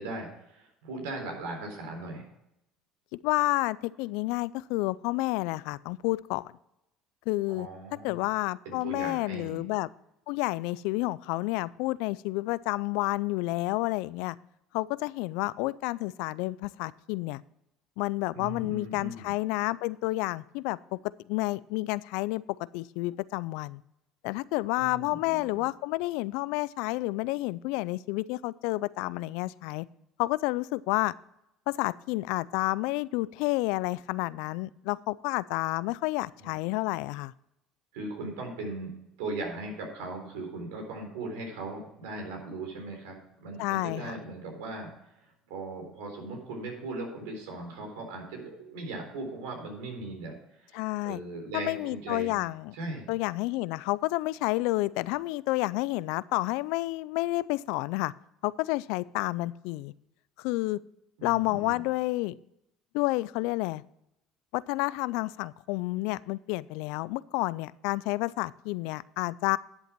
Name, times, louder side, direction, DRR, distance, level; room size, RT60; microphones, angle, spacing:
voice 1, 0.0-2.3 7.5-8.2 8.7-9.6 18.3-19.3 24.7-25.6 36.4-36.6 37.9-38.9 39.2-50.8 51.0-52.4 52.7-53.1 61.2-61.8, right 2 dB, 85° right, 2 dB, 3.8 m, -39 dB
voice 2, 3.2-6.6 7.3-7.7 8.0-9.9 10.3-14.4 14.7-17.4 18.0-21.0 21.3-22.4 22.7-23.8 24.2-29.9 30.2-31.1 31.7-37.3 43.6-44.1 50.7-51.2 51.5-52.7 53.1-58.1 58.4-59.9 60.4-60.8 61.2-62.3 62.9-63.8 64.5-69.6, left 20 dB, 75° left, 20 dB, 0.4 m, -30 dB
11.0 x 7.8 x 4.5 m, 0.84 s
supercardioid pair, 90°, 0 cm